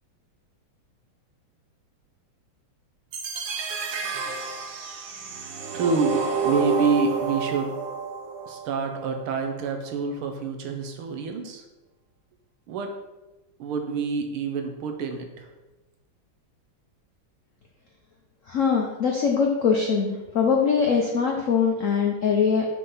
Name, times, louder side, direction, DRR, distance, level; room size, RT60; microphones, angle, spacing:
sound 1, 3.1-9.1, right 5 dB, 70° right, 1.6 m, -29 dB
voice 1, 5.7-7.7 8.5-11.6 12.7-12.9 13.6-15.5, right 5 dB, 85° right, 5 dB, 1.8 m, -27 dB
voice 2, 18.5-22.7, left 6 dB, 80° left, 1 dB, 0.7 m, -22 dB
6.7 x 3.8 x 5.5 m, 1.1 s
omnidirectional pair, 2.3 m